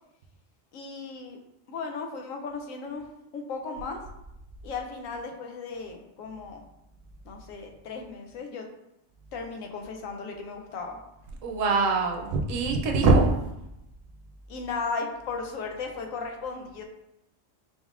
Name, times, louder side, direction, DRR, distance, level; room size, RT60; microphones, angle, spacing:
voice 1, 0.7-1.4 1.7-4.0 4.6-6.6 7.2-8.7 9.3-11.0 14.5-16.8, left 4 dB, 90° left, 3 dB, 1.0 m, -36 dB
voice 2, 11.4-13.4, right 3 dB, 80° right, 1 dB, 0.9 m, -22 dB
4.0 x 3.6 x 2.4 m, 0.85 s
omnidirectional pair, 1.4 m